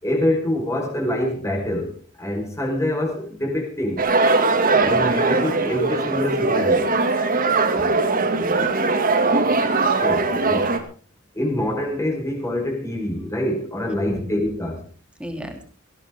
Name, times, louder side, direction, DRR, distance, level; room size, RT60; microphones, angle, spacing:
voice 1, 0.0-4.0 4.8-7.0 10.0-10.8 11.3-14.8, left 1 dB, 15° left, 1 dB, 4.7 m, -25 dB
sound 1, 4.0-10.8, right 3 dB, 45° right, 2.3 m, -20 dB
voice 2, 7.7-8.8 13.9-14.3 15.2-15.6, equal, 5° right, 4 dB, 3.0 m, -35 dB
18.5 x 17.5 x 3.7 m, 0.40 s
head